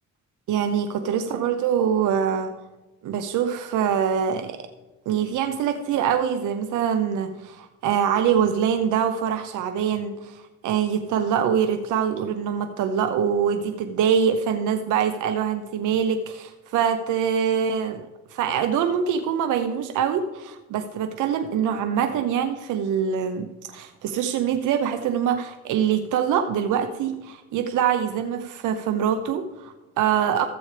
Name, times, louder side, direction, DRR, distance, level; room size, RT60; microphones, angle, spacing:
voice 1, 0.5-2.5 3.0-4.7 5.1-30.5, right 8 dB, 80° right, 8 dB, 0.7 m, -24 dB
14.0 x 7.9 x 3.3 m, 1.1 s
cardioid pair, 90°, 30 cm